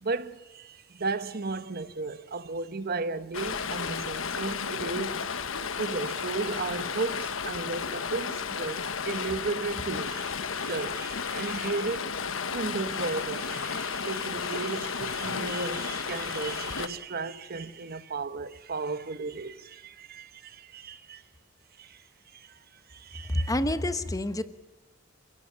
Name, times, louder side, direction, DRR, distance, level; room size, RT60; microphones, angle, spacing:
voice 1, 0.0-5.3 5.8-12.1 12.5-21.2 21.8-22.0 22.3-22.6 22.9-23.5, right 3 dB, 50° right, 1.0 m, -34 dB
Stream, 3.3-16.9, left 6 dB, 85° left, 1.2 m, -33 dB
voice 2, 23.2-24.4, left 1 dB, 20° left, 1.1 m, -28 dB
27.5 x 16.5 x 8.6 m
head